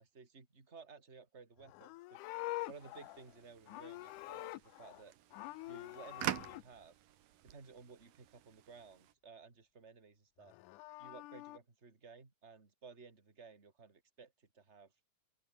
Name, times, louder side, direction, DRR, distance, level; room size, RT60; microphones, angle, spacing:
voice 1, 0.0-2.3 2.7-5.1 5.6-6.9 7.4-10.5 11.0-14.9, right 5 dB, 20° right, 3.2 m, -56 dB
Livestock farm animals working animals, 1.6-5.0 5.3-6.6 10.4-11.6, left 19 dB, 80° left, 2.0 m, -46 dB
sound 1, 2.6-9.1, right 12 dB, 85° right, 3.1 m, -47 dB
open air
omnidirectional pair, 3.8 m